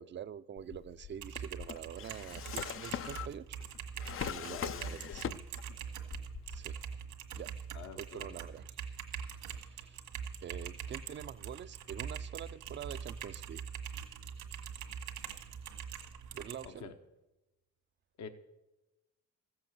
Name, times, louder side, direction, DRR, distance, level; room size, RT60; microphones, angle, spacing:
voice 1, 0.0-3.6 4.3-5.4 6.5-6.8 7.4-7.5 8.0-8.8 9.4-10.0 10.4-13.6 16.3-16.9, right 9 dB, 40° right, 0.5 m, -46 dB
Drawer open or close, 0.6-5.8 6.1-6.9, left 10 dB, 45° left, 0.5 m, -42 dB
Typing, 1.1-16.7, right 7 dB, 85° right, 1.8 m, -43 dB
voice 2, 4.5-5.2 7.7-8.4 16.6-16.9 18.2-18.3, left 6 dB, 65° left, 1.0 m, -47 dB
14.5 x 7.9 x 7.4 m
cardioid pair, 90°, 30 cm